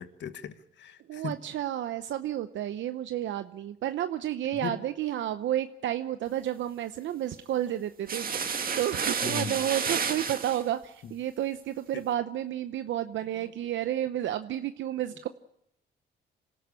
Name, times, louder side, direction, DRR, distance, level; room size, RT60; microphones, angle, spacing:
voice 1, 0.0-1.3 4.6-4.8 9.2-9.6 11.0-11.1 11.9-12.0 13.3-13.4, left 8 dB, 65° left, 10 dB, 1.5 m, -38 dB
voice 2, 1.1-15.3, right 11 dB, 70° right, 10 dB, 0.8 m, -31 dB
sound 1, 8.1-10.6, right 6 dB, 45° right, 2.0 m, -30 dB
26.0 x 13.5 x 8.3 m, 0.78 s
cardioid pair, 90°, 20 cm